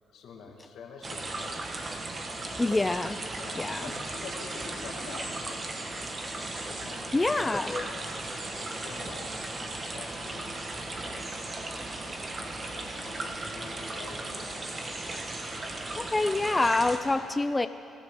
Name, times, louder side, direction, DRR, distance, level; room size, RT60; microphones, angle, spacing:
voice 1, 0.1-1.6 3.3-5.5 6.7-8.2 8.4-10.6 11.0-11.3 12.6-14.7 17.1-17.3, left 5 dB, 80° left, 1 dB, 2.0 m, -46 dB
sound 1, 1.0-17.0, right 2 dB, 35° right, 1.6 m, -36 dB
voice 2, 2.6-3.2 3.6-3.8 7.1-7.9 16.0-17.7, left 2 dB, 15° left, 10 dB, 0.4 m, -26 dB
24.5 x 14.5 x 3.8 m, 2.8 s
cardioid pair, 90°, 0 cm